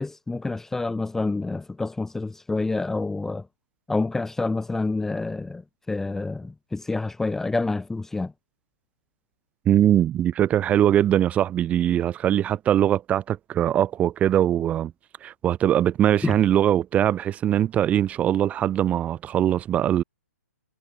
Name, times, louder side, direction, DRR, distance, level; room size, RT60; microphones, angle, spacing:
voice 1, 0.0-3.5 3.9-5.6 5.9-8.3 16.2-16.3, left 3 dB, 5° left, 0.9 m, -28 dB
voice 2, 9.7-14.9 15.2-20.0, right 11 dB, 15° right, 1.1 m, -21 dB
figure-of-eight pair, 135°, 9 cm